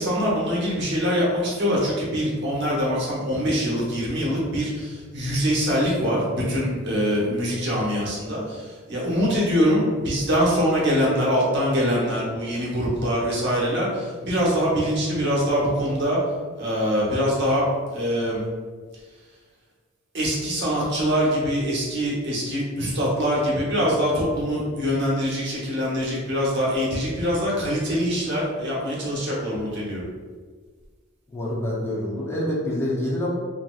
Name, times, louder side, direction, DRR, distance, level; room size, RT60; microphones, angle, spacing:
voice 1, 0.0-16.2 16.6-17.6 17.9-18.4 20.1-30.0, equal, 60° right, -5 dB, 0.9 m, -23 dB
voice 2, 31.3-33.3, left 1 dB, 10° left, -6 dB, 0.6 m, -26 dB
3.0 x 2.8 x 2.3 m, 1.5 s
head